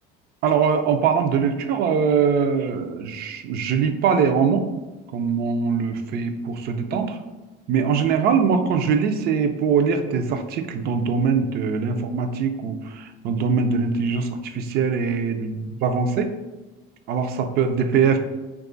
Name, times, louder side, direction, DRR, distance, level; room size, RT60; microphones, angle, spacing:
voice 1, 0.4-4.7 5.1-7.2 7.7-16.3 17.1-18.2, right 6 dB, 50° right, 7 dB, 0.4 m, -22 dB
3.0 x 2.3 x 3.7 m, 1.1 s
cardioid pair, 145°, 20 cm